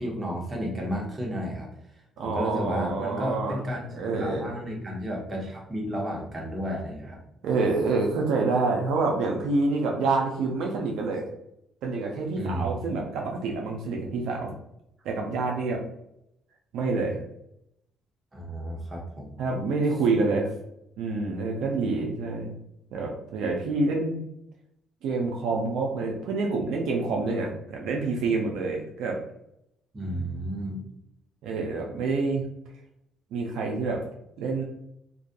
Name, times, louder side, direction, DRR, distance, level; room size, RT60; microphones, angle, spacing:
voice 1, 0.0-1.7 2.2-7.2 12.4-13.1 18.3-19.4 29.9-30.8, equal, 25° right, -1 dB, 0.9 m, -32 dB
voice 2, 2.2-3.6 3.9-4.6 7.4-11.2 11.8-14.5 15.0-15.8 16.7-17.1 19.4-20.5 21.0-22.5 22.9-24.2 25.0-29.2 31.4-32.4 33.3-34.0 34.4-34.6, right 3 dB, 80° right, 0 dB, 0.5 m, -27 dB
2.5 x 2.3 x 2.5 m, 0.79 s
cardioid pair, 80°, 0 cm